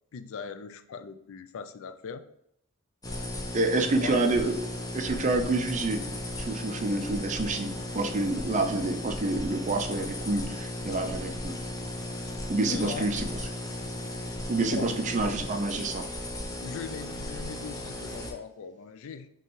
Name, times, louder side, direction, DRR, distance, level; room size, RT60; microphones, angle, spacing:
voice 1, 0.1-2.2 4.0-4.3 12.7-13.2 14.7-15.0 16.6-19.3, left 6 dB, 65° left, 11 dB, 0.4 m, -39 dB
sound 1, 3.0-18.3, left 1 dB, 15° left, 0.6 m, -36 dB
voice 2, 3.5-4.5 4.9-6.0 6.4-11.5 12.5-13.3 14.5-16.0, right 2 dB, 35° right, 6 dB, 0.5 m, -28 dB
5.6 x 3.1 x 3.1 m, 0.74 s
head